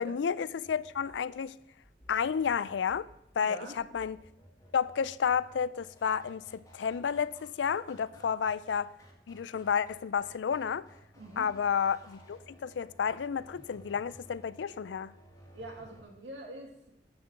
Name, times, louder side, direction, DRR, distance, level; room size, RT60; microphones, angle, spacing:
voice 1, 0.0-1.6 2.1-3.1 3.4-4.2 4.7-8.9 9.3-10.9 11.4-15.1, left 7 dB, 85° left, 0.4 m, -31 dB
sound 1, 0.6-16.0, right 1 dB, 20° left, 1.8 m, -57 dB
voice 2, 3.4-3.8 8.2-8.3 11.2-11.5 15.5-16.9, right 1 dB, 90° right, 2.2 m, -45 dB
10.5 x 6.0 x 6.5 m
head